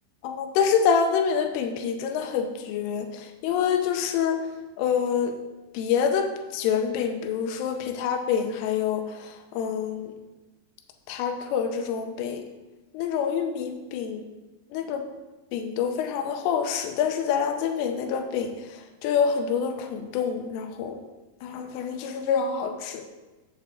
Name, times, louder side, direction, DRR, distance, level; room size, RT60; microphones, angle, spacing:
voice 1, 0.2-4.4 4.8-5.3 5.7-10.1 11.1-12.4 12.9-14.2 14.7-15.0 15.5-18.5 19.0-21.0 21.4-23.1, left 7 dB, 90° left, 6 dB, 3.2 m, -26 dB
7.7 x 7.4 x 3.6 m, 1.1 s
omnidirectional pair, 5.7 m